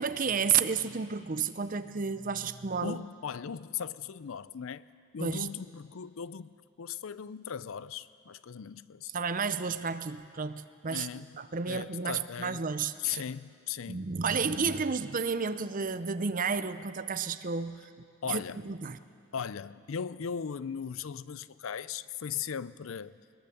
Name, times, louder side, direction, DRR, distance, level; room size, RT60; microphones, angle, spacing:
voice 1, 0.0-3.0 5.2-5.5 9.1-11.1 11.3-13.2 13.9-17.8 18.3-19.0, right 6 dB, 40° right, 0.6 m, -31 dB
voice 2, 2.8-4.8 5.1-6.5 6.8-9.1 10.8-11.3 11.6-12.7 13.0-14.1 18.2-18.6 19.3-23.2, left 7 dB, 70° left, 0.5 m, -38 dB
22.0 x 21.0 x 6.9 m
head